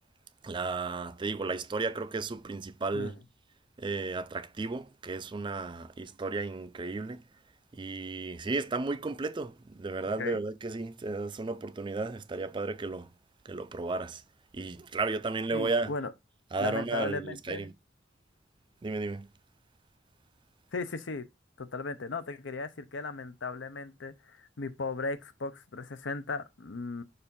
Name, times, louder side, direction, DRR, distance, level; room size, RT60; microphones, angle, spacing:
voice 1, 0.4-3.2 3.8-7.2 7.7-13.1 13.5-14.2 14.5-15.9 16.5-17.7 18.8-19.3, right 3 dB, 25° right, 0.4 m, -34 dB
voice 2, 15.5-16.1 16.6-17.7 20.7-21.3 21.6-27.0, left 3 dB, 85° left, 0.7 m, -36 dB
6.8 x 2.6 x 5.4 m
head